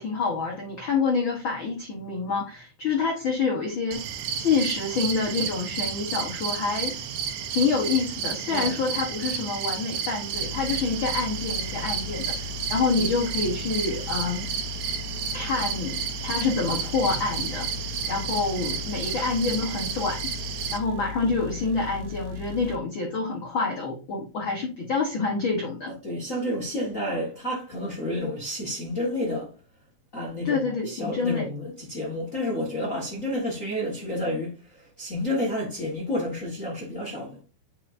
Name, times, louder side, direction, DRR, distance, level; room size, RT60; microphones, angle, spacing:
voice 1, 0.0-4.0 4.4-7.0 7.5-14.5 15.3-17.7 18.1-20.3 20.7-25.9 30.4-31.5, left 4 dB, 80° left, 1.1 m, -27 dB
sound 1, 3.9-20.8, right 7 dB, 70° right, 2.1 m, -32 dB
voice 2, 8.5-9.0 26.0-29.5 30.1-37.4, left 1 dB, 45° left, 1.0 m, -30 dB
sound 2, 10.3-22.8, left 6 dB, 90° right, 2.6 m, -37 dB
8.5 x 4.4 x 2.6 m
omnidirectional pair, 4.0 m